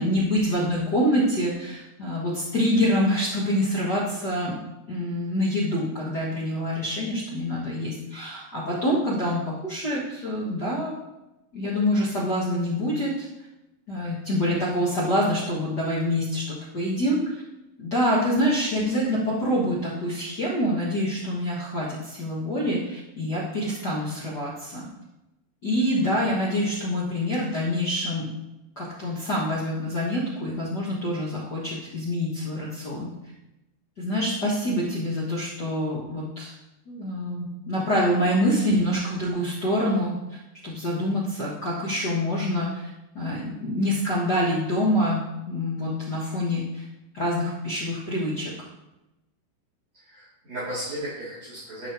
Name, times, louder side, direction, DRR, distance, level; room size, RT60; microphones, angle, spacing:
voice 1, 0.0-4.6 4.9-11.0 11.5-13.2 13.9-17.4 17.8-24.9 25.6-28.3 28.8-33.1 34.0-36.5 36.9-40.2 40.6-42.9 43.1-46.8 47.1-48.5, equal, 60° left, -6 dB, 1.0 m, -26 dB
voice 2, 49.9-51.9, right 1 dB, 50° right, -12 dB, 4.0 m, -35 dB
11.5 x 5.3 x 4.4 m, 0.95 s
omnidirectional pair, 4.3 m